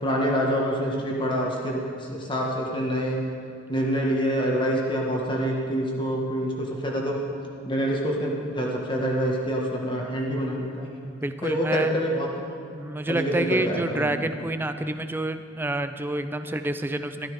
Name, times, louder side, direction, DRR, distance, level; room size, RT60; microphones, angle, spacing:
voice 1, 0.0-3.2 3.7-7.2 7.6-10.9 11.4-12.3 13.1-14.1, equal, 25° left, -1 dB, 1.5 m, -26 dB
voice 2, 11.0-11.9 12.7-17.3, right 1 dB, 10° right, 9 dB, 0.4 m, -28 dB
13.0 x 12.5 x 4.8 m, 2.4 s
head